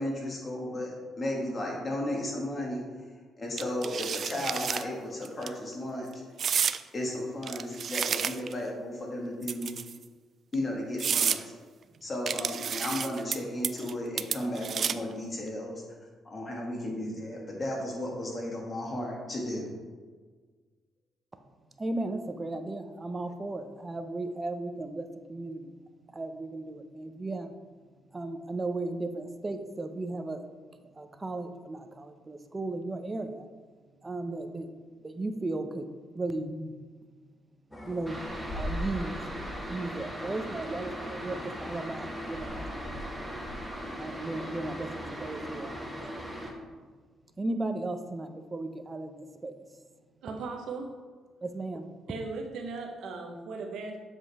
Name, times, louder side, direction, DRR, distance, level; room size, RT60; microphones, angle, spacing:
voice 1, 0.0-2.8 3.4-6.1 6.9-9.7 10.5-11.4 12.0-15.8 16.3-19.7, left 1 dB, 35° left, -2 dB, 2.0 m, -34 dB
sound 1, 3.6-4.8 5.2-5.5 6.4-6.8 7.4-8.6 9.4-10.0 10.5-10.6 11.0-11.4 12.3-13.4 13.6-13.9 14.2-15.1, right 7 dB, 55° right, 0.3 m, -30 dB
voice 2, 21.8-25.8 26.1-27.6 28.1-30.4 30.8-33.5 34.0-34.7 35.0-36.7 37.9-38.2 38.5-39.2 39.7-43.4 44.0-46.3 47.4-49.8 51.4-51.9, right 2 dB, 25° right, 8 dB, 0.7 m, -36 dB
sound 2, 37.7-46.5, equal, 15° left, 1.1 m, -41 dB
sound 3, 38.1-46.5, equal, 5° right, 1.5 m, -40 dB
voice 3, 50.2-51.0 52.1-54.0, right 4 dB, 80° right, 2 dB, 1.1 m, -37 dB
7.5 x 5.2 x 3.5 m, 1.5 s
cardioid pair, 90°, 0 cm